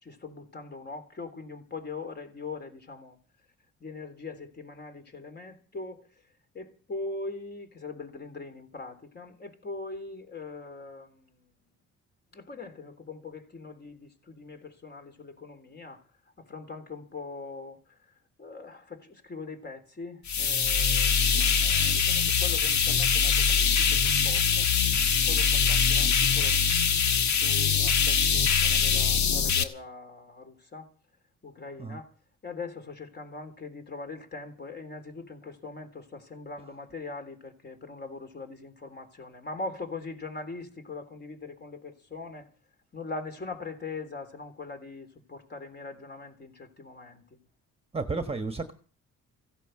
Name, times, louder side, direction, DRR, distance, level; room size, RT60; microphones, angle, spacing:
voice 1, 0.0-3.2 3.8-6.1 6.5-11.4 12.3-16.0 16.4-18.0 18.4-24.7 25.3-27.0 27.3-30.9 31.4-32.1 32.4-42.5 42.9-47.4, left 3 dB, 35° left, 3.6 m, -41 dB
sound 1, 20.3-29.6, left 6 dB, 70° left, 1.6 m, -23 dB
voice 2, 47.9-48.7, right 3 dB, 20° right, 1.4 m, -32 dB
16.0 x 11.0 x 6.6 m
cardioid pair, 90°, 30 cm